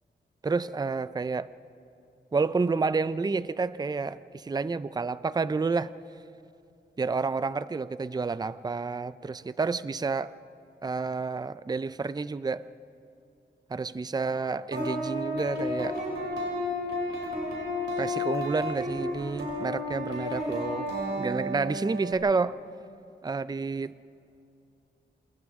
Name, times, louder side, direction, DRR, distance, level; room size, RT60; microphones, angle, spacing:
voice 1, 0.4-1.5 2.3-5.9 7.0-10.4 10.8-12.7 13.7-16.0 18.0-20.9 21.2-22.6 23.2-23.9, right 4 dB, 20° right, 16 dB, 0.4 m, -29 dB
sound 1, 14.7-22.1, left 1 dB, 70° right, 6.1 m, -32 dB
28.5 x 27.5 x 3.6 m, 2.6 s
wide cardioid pair, 80°, 20 cm